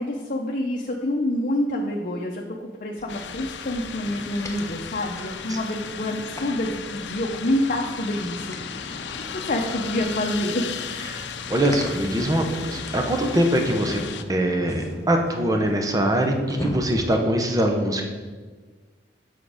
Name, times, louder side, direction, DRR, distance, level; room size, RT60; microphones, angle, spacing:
voice 1, 0.0-2.4 2.8-10.8, left 1 dB, 50° left, 0 dB, 0.7 m, -27 dB
sound 1, 3.0-17.2, equal, 15° left, 0.9 m, -40 dB
sound 2, 3.1-14.2, left 7 dB, 85° left, 0.5 m, -35 dB
voice 2, 11.1-14.0 14.3-18.1, right 1 dB, 20° right, 3 dB, 0.9 m, -23 dB
7.5 x 6.0 x 5.0 m, 1.4 s
head